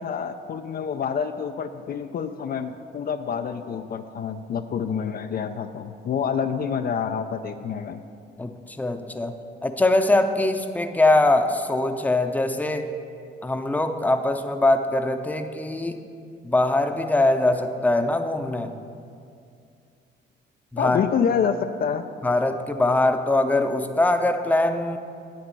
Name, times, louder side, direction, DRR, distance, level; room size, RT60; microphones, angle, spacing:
voice 1, 0.0-8.1 20.8-22.1, left 7 dB, 50° left, 7 dB, 0.4 m, -27 dB
voice 2, 8.4-12.9 13.4-16.0 16.4-18.8 20.7-21.0 22.2-25.0, left 2 dB, 10° left, 6 dB, 0.7 m, -22 dB
10.5 x 8.0 x 5.3 m, 2.4 s
cardioid pair, 90°, 20 cm